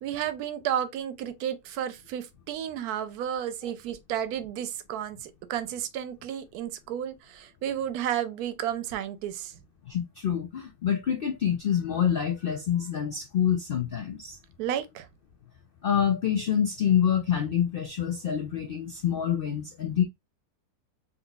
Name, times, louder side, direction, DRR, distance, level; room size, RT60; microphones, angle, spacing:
voice 1, 0.0-9.6 14.6-15.1, right 10 dB, 90° right, 1.1 m, -32 dB
voice 2, 9.9-14.4 15.8-20.0, left 9 dB, 85° left, 0.5 m, -26 dB
3.7 x 2.9 x 2.3 m
omnidirectional pair, 1.6 m